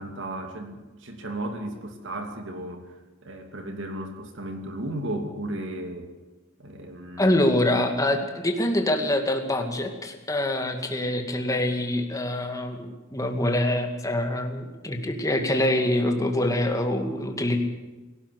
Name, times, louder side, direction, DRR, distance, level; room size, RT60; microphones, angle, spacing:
voice 1, 0.0-2.9 3.2-6.1 6.6-7.4, right 1 dB, 65° right, 5 dB, 2.8 m, -34 dB
voice 2, 7.2-17.6, left 1 dB, 15° left, 4 dB, 2.3 m, -25 dB
18.0 x 17.0 x 8.3 m, 1.2 s
head